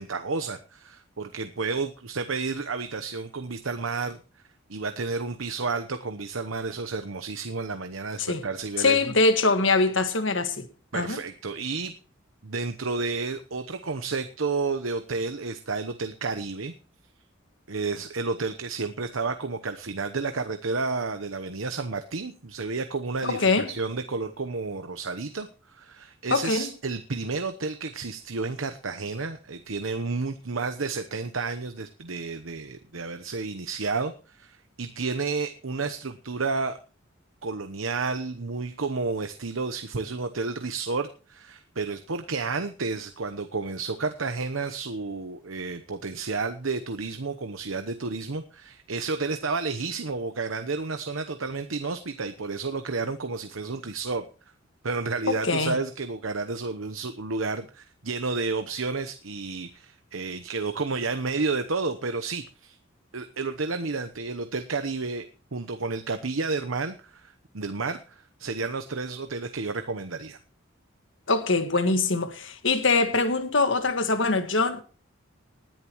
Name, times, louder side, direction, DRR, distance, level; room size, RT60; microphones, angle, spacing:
voice 1, 0.0-4.2 4.7-9.0 10.9-11.9 12.4-16.7 17.7-36.8 37.4-54.3 54.8-62.8 63.1-65.3 65.5-70.4, right 4 dB, 80° right, 1.0 m, -31 dB
voice 2, 8.8-10.7 10.9-11.2 23.2-23.7 26.3-26.7 55.3-55.8 71.3-74.8, left 3 dB, 65° left, 1.7 m, -23 dB
19.5 x 10.5 x 3.1 m
head